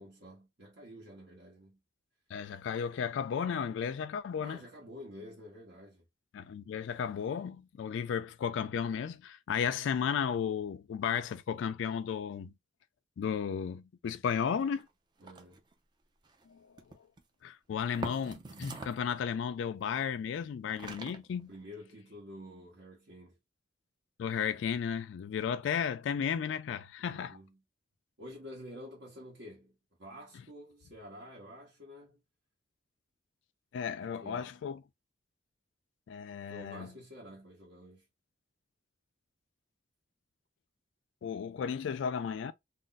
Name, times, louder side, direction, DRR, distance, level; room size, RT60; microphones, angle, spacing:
voice 1, 0.0-1.8 4.4-6.0 15.2-15.6 21.5-23.4 27.0-27.6 28.2-32.2 34.2-34.6 36.4-38.0, equal, 65° right, 1.0 m, -49 dB
voice 2, 2.3-4.6 6.3-12.5 13.2-14.9 16.5-16.7 17.4-21.5 24.2-27.4 33.7-34.8 36.1-36.9 41.2-42.5, left 7 dB, 75° left, 0.3 m, -34 dB
sound 1, 14.6-14.9 15.2-15.7 16.2-16.4 16.8-17.2 17.9-19.1 20.3-20.4 20.7-21.6, right 3 dB, 25° right, 0.4 m, -44 dB
2.5 x 2.0 x 3.9 m
head